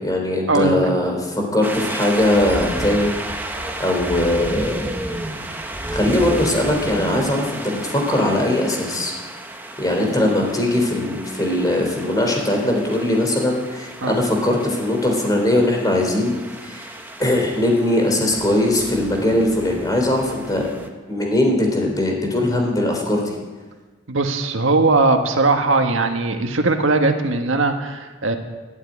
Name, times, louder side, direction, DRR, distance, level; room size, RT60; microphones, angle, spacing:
voice 1, 0.0-3.1 3.8-4.8 5.9-9.1 9.8-16.3 16.6-16.9 17.2-20.7 21.1-23.4, left 1 dB, 20° left, 1 dB, 3.7 m, -20 dB
sound 1, 1.6-20.9, right 1 dB, 10° right, 1.2 m, -32 dB
voice 2, 24.1-28.4, right 3 dB, 85° right, 5 dB, 1.6 m, -19 dB
13.0 x 11.0 x 9.8 m, 1.3 s
head